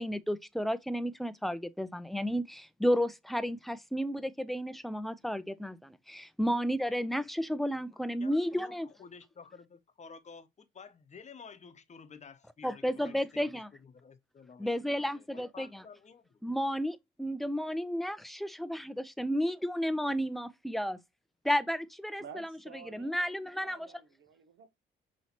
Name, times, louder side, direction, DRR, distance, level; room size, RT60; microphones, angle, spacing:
voice 1, 0.0-8.9 12.6-13.7 14.6-15.8 16.4-21.0 21.4-22.5 22.9-23.8, equal, ahead, 0.5 m, -32 dB
voice 2, 8.0-16.4, left 5 dB, 35° left, 0.9 m, -52 dB
voice 3, 22.2-24.7, right 7 dB, 75° right, 1.1 m, -51 dB
5.5 x 3.1 x 2.8 m
cardioid pair, 90°, 20 cm